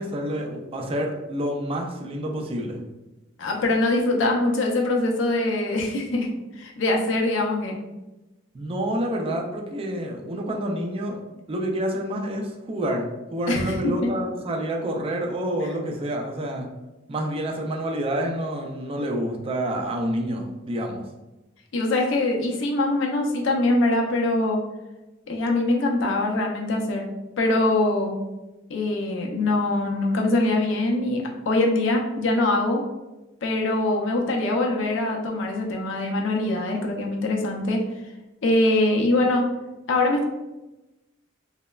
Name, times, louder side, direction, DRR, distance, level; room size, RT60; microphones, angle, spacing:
voice 1, 0.0-2.8 8.5-11.2 11.5-16.7 17.1-21.0, right 1 dB, 30° right, 1 dB, 0.3 m, -28 dB
voice 2, 3.4-6.3 6.6-7.8 13.5-13.9 21.7-24.6 25.3-27.1 27.4-28.1 28.7-32.9 33.4-37.8 38.4-39.4 39.9-40.2, left 2 dB, 70° left, 0 dB, 0.5 m, -23 dB
3.0 x 2.0 x 2.2 m, 1.0 s
head